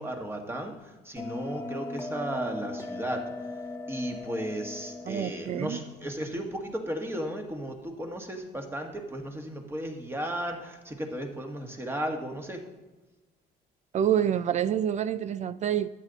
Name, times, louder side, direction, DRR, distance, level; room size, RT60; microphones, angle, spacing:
voice 1, 0.0-3.3 3.9-12.6, right 1 dB, 15° right, 1.5 m, -35 dB
Bell, 1.2-6.2, left 2 dB, 15° left, 0.7 m, -39 dB
voice 2, 5.1-5.8 13.9-15.9, right 9 dB, 45° right, 0.4 m, -27 dB
12.5 x 8.3 x 4.0 m
cardioid pair, 110°, 17 cm